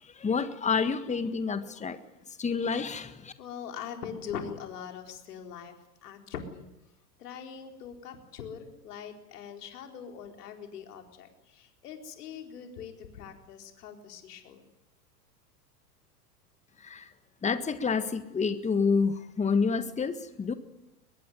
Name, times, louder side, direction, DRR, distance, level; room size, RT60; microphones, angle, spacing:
voice 1, 0.2-2.0 2.4-3.3 16.8-17.1 17.4-20.5, left 5 dB, 15° left, 11 dB, 1.6 m, -28 dB
voice 2, 3.4-5.8 6.0-6.7 7.2-14.6, left 7 dB, 70° left, 4 dB, 4.3 m, -42 dB
23.5 x 21.0 x 9.5 m, 0.95 s
hypercardioid pair, 95°, 48 cm